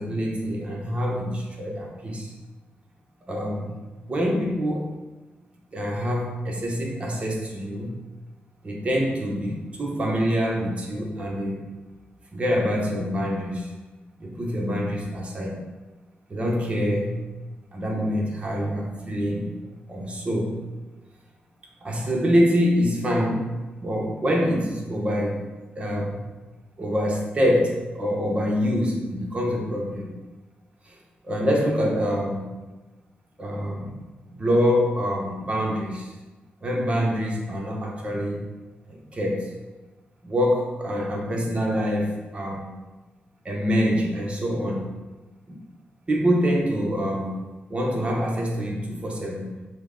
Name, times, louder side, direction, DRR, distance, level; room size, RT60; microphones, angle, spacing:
voice 1, 0.0-2.3 3.3-3.8 4.1-5.0 5.7-8.0 8.6-11.6 12.3-13.7 14.2-15.6 16.3-17.2 17.7-19.5 19.9-20.6 21.8-23.5 23.8-25.4 25.8-26.2 26.8-30.2 30.9-31.0 31.2-32.5 33.4-34.0 34.3-36.1 36.6-38.5 38.9-39.5 40.2-42.7 43.4-44.9 45.5-45.6 46.1-47.4 47.7-49.5, equal, 30° right, -1 dB, 0.8 m, -25 dB
5.9 x 2.1 x 3.7 m, 1.2 s
wide cardioid pair, 130°, 4 cm